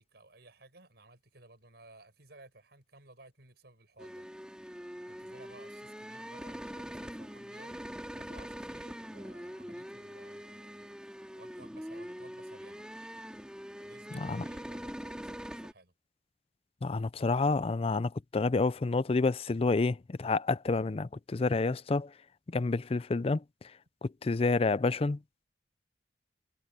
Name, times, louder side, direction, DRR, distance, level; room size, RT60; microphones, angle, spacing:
voice 1, 0.0-4.3 5.1-10.8 11.3-12.8 13.8-15.9, right 2 dB, 65° right, 7.5 m, -57 dB
sound 1, 4.0-15.7, equal, 5° right, 3.0 m, -43 dB
voice 2, 16.8-22.1 22.5-23.4 24.0-25.2, left 3 dB, 35° left, 0.4 m, -29 dB
head